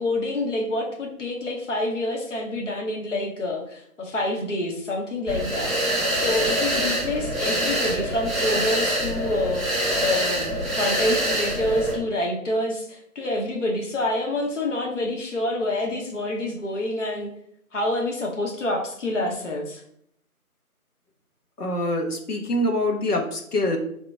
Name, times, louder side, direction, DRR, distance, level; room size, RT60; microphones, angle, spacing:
voice 1, 0.0-5.7 6.1-17.3 17.7-19.8, left 1 dB, 55° left, 0 dB, 1.0 m, -27 dB
sound 1, 5.3-12.0, equal, ahead, 0.5 m, -25 dB
voice 2, 21.6-23.8, left 1 dB, 85° left, 1 dB, 1.2 m, -25 dB
4.6 x 2.9 x 3.3 m, 0.69 s
figure-of-eight pair, 170°, 44 cm